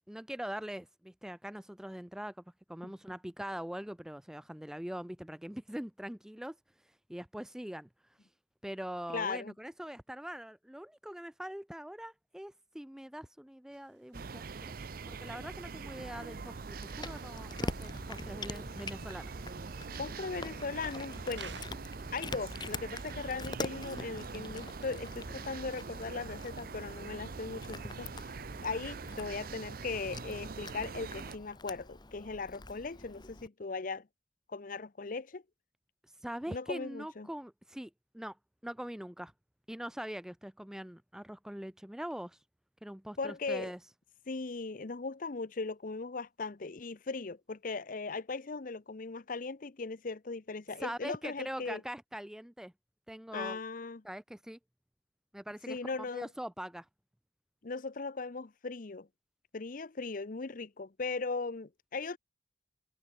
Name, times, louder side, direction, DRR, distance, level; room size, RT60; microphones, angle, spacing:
voice 1, 0.0-2.3 2.7-6.6 7.1-7.9 8.6-14.7 15.1-19.3 36.2-38.4 38.6-39.3 39.7-42.4 42.8-43.8 50.8-52.7 53.1-53.6 54.0-54.6 55.3-55.8 56.1-56.9, equal, 5° right, 0.4 m, -42 dB
voice 2, 9.1-9.5 20.0-21.6 22.1-28.3 28.6-34.1 34.5-35.4 36.5-37.3 43.2-43.7 44.3-51.8 53.3-54.0 55.7-56.3 57.6-59.1 59.5-62.2, left 4 dB, 50° left, 0.7 m, -38 dB
sound 1, 13.7-21.7, right 6 dB, 75° right, 4.6 m, -56 dB
sound 2, 14.1-31.4, right 4 dB, 50° right, 0.6 m, -43 dB
Cat, 16.4-33.5, left 2 dB, 25° left, 1.5 m, -45 dB
head